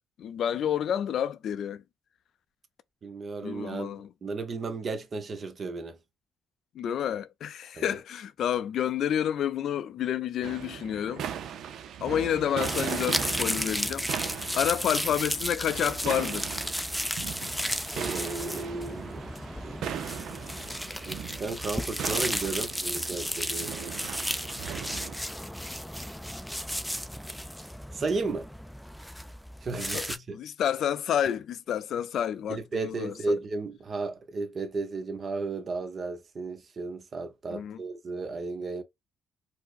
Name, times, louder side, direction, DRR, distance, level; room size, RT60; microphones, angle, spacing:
voice 1, 0.2-1.8 3.4-4.1 6.7-11.3 12.0-14.1 14.6-16.5 29.9-33.4 37.5-37.8, left 9 dB, 70° left, 0.4 m, -29 dB
voice 2, 3.0-6.0 7.8-7.9 18.0-19.3 19.6-19.8 21.1-23.9 27.9-28.5 29.6-30.4 32.5-38.8, right 3 dB, 45° right, 0.8 m, -34 dB
sound 1, 10.4-25.2, right 9 dB, 75° right, 0.5 m, -38 dB
sound 2, 12.6-30.2, equal, ahead, 0.4 m, -34 dB
4.6 x 2.1 x 2.4 m
cardioid pair, 90°, 0 cm